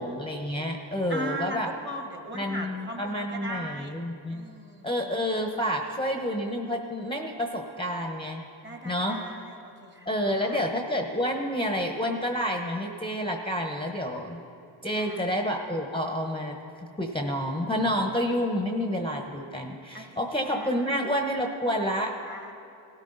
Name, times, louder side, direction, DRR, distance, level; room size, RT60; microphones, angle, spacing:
voice 1, 0.0-1.7 2.3-4.4 4.8-8.4 8.8-9.2 10.1-14.4 14.8-16.5 17.0-22.1, equal, 10° left, 3 dB, 1.0 m, -29 dB
voice 2, 1.1-4.0 4.3-4.9 8.6-10.6 15.0-15.3 19.9-20.0 20.4-20.9 22.2-22.5, right 1 dB, 20° right, 4 dB, 1.5 m, -39 dB
18.0 x 13.0 x 4.0 m, 2.7 s
cardioid pair, 65°, 50 cm